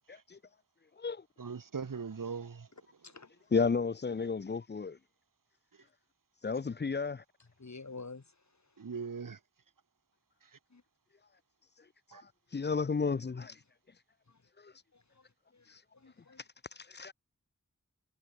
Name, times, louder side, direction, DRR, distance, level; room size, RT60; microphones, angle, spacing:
voice 1, 0.1-0.4 1.0-1.2 3.5-5.0 6.4-7.2 12.1-13.6 14.6-14.7 15.7-15.8 16.4-17.1, left 5 dB, 35° left, 0.5 m, -33 dB
voice 2, 1.4-2.7 8.8-9.4 12.1-12.2, right 5 dB, 90° right, 1.4 m, -39 dB
voice 3, 7.6-8.2 10.7-10.8 14.3-14.4 14.9-15.2 15.5-15.7 15.9-16.4, left 3 dB, 60° left, 2.8 m, -48 dB
wide cardioid pair, 65°, 32 cm